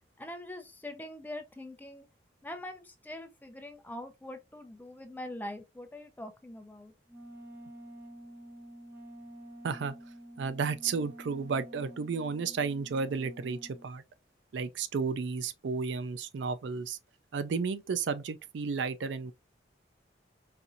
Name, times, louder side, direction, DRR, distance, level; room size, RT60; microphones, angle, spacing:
voice 1, 0.2-2.1 2.4-6.9, left 1 dB, 10° left, 0.4 m, -43 dB
Wind instrument woodwind instrument, 7.1-13.9, right 1 dB, 10° right, 0.9 m, -49 dB
voice 2, 9.6-10.0 10.4-14.0 14.5-17.0 17.3-19.3, right 5 dB, 75° right, 0.4 m, -33 dB
4.2 x 2.6 x 2.5 m
head